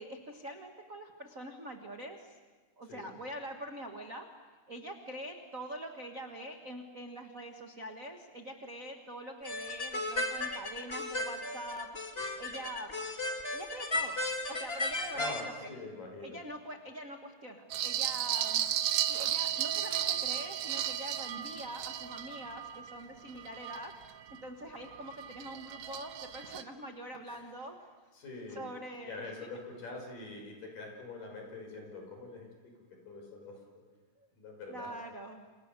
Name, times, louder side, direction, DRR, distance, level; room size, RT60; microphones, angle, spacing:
voice 1, 0.0-2.4 2.8-4.3 4.7-12.9 13.5-14.2 14.5-15.7 16.2-18.6 19.1-23.9 24.4-27.8 28.5-29.3 34.7-35.5, right 1 dB, 45° right, 4 dB, 1.0 m, -44 dB
sound 1, 9.4-15.4, left 2 dB, 35° left, 1.0 m, -35 dB
voice 2, 15.1-16.4 27.3-27.4 28.1-28.7 29.0-32.7 33.1-33.6 34.4-34.9, left 2 dB, 60° left, 2 dB, 7.0 m, -44 dB
sound 2, 17.7-24.4 24.8-26.6, right 11 dB, 80° right, 2.8 m, -34 dB
29.0 x 29.0 x 6.9 m, 1.4 s
omnidirectional pair, 4.3 m